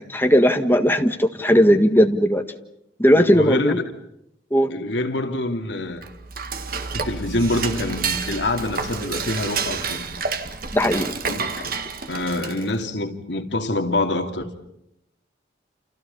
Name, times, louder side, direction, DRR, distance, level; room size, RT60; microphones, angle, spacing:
voice 1, 0.0-2.4 3.0-3.8 4.5-4.7 10.7-11.1, equal, 10° left, 1.6 m, -17 dB
voice 2, 3.1-3.9 4.7-6.0 6.9-10.1 11.3-11.7 12.1-14.5, left 2 dB, 70° left, 2.6 m, -26 dB
Dishes pots and pans / Cutlery silverware, 5.9-12.8, right 5 dB, 50° right, 1.9 m, -29 dB
29.5 x 28.5 x 5.5 m
head